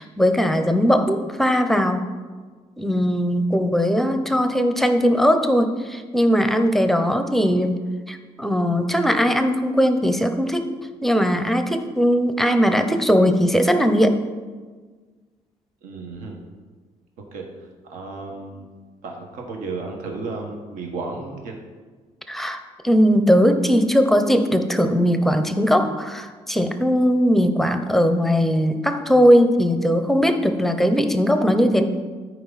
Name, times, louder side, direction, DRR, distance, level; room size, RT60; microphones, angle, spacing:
voice 1, 0.0-2.0 2.8-7.8 8.1-10.7 11.0-14.1 22.3-31.9, equal, ahead, 7 dB, 0.6 m, -19 dB
voice 2, 15.8-16.4 17.3-18.7 19.0-21.5, right 3 dB, 85° right, 1 dB, 1.4 m, -33 dB
13.5 x 4.8 x 4.1 m, 1.4 s
cardioid pair, 145°, 13 cm